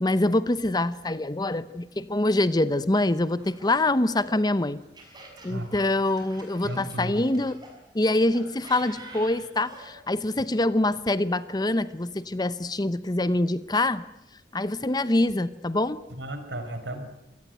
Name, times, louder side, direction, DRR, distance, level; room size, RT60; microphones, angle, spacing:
voice 1, 0.0-4.8 5.4-7.6 7.9-14.0 14.5-16.0, left 2 dB, 25° left, 15 dB, 0.8 m, -25 dB
Laughter, 3.3-7.7 8.3-9.9, right 2 dB, 25° right, 6.6 m, -47 dB
voice 2, 6.6-7.2 10.3-10.4 16.1-17.0, right 1 dB, 90° right, 8 dB, 4.9 m, -34 dB
26.0 x 18.0 x 9.2 m, 0.88 s
head